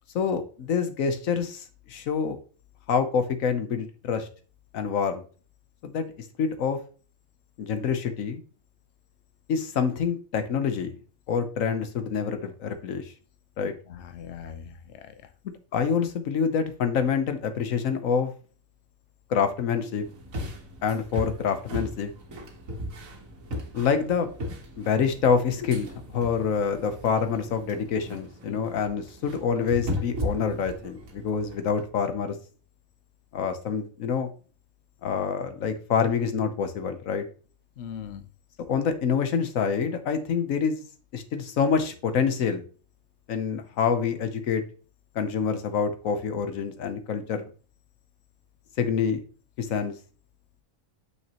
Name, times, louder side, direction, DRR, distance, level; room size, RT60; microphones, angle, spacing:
voice 1, 0.1-2.4 2.9-4.3 4.7-5.2 5.8-6.0 6.4-6.8 7.6-8.4 9.5-10.9 11.3-13.1 13.6-13.7 15.7-18.3 19.3-20.0 20.8-22.1 23.7-24.3 24.8-32.3 33.3-34.3 35.0-37.2 38.7-40.8 41.1-42.6 43.3-44.6 45.1-47.4 48.8-49.2 49.6-49.9, left 6 dB, 80° left, 8 dB, 1.2 m, -26 dB
voice 2, 13.9-15.3 28.5-28.7 37.8-38.3, left 8 dB, 65° left, 10 dB, 0.9 m, -40 dB
sound 1, 20.0-31.8, left 1 dB, 80° right, 1.6 m, -37 dB
6.4 x 5.8 x 2.9 m, 0.38 s
omnidirectional pair, 1.4 m